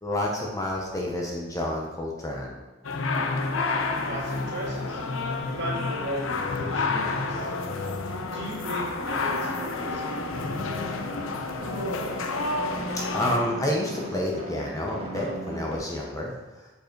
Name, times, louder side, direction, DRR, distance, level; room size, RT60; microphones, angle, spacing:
voice 1, 0.0-2.6 12.9-16.7, left 1 dB, 15° left, -2 dB, 0.8 m, -29 dB
sound 1, 2.8-13.4, left 3 dB, 60° left, 0.7 m, -29 dB
voice 2, 4.1-5.0 5.4-7.5 8.3-10.2, equal, 50° right, -4 dB, 2.1 m, -36 dB
sound 2, 5.4-6.2 6.4-15.8, right 1 dB, 25° right, 1.7 m, -40 dB
7.8 x 4.8 x 4.5 m, 1.2 s
head